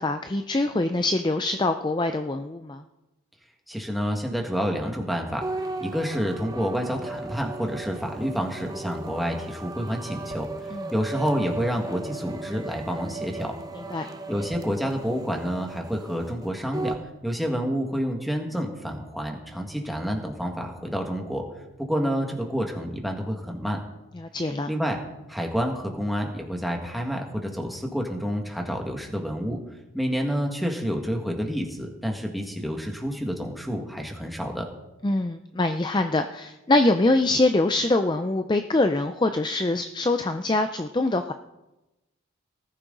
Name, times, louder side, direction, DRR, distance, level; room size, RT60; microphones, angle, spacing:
voice 1, 0.0-2.8 10.7-10.9 13.9-14.1 24.2-24.7 35.0-41.3, left 2 dB, 20° left, 8 dB, 0.4 m, -24 dB
voice 2, 3.7-5.5 5.8-10.5 10.9-13.5 14.3-16.9 17.2-21.5 21.8-23.8 24.7-25.0 25.3-29.6 29.9-34.7, equal, ahead, 1 dB, 1.8 m, -28 dB
sound 1, 5.4-17.0, right 2 dB, 15° right, 0.8 m, -36 dB
19.5 x 14.0 x 3.9 m, 1.0 s
head